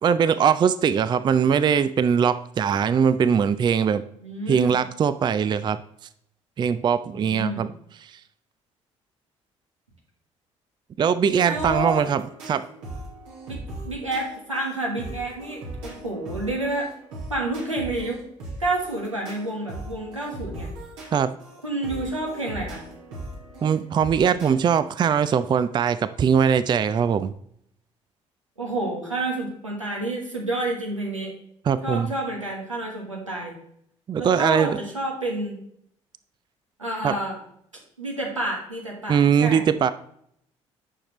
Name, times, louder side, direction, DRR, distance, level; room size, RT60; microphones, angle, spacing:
voice 1, 0.0-4.0 4.5-5.8 6.6-7.7 8.0-8.2 11.0-12.6 21.1-21.3 23.6-27.3 31.7-32.1 34.1-34.8 37.0-37.1 39.1-39.9, right 7 dB, 30° right, 14 dB, 0.4 m, -21 dB
voice 2, 4.2-4.8 7.1-7.7 11.4-12.0 13.5-16.9 17.3-18.2 18.6-20.7 21.6-22.8 28.6-31.3 31.8-33.6 34.2-35.5 36.8-37.4 38.0-39.7, right 2 dB, 85° right, -1 dB, 1.4 m, -29 dB
sound 1, 11.5-24.5, right 1 dB, 70° right, 2.1 m, -39 dB
9.7 x 6.3 x 3.1 m, 0.69 s
figure-of-eight pair, 50°, 16 cm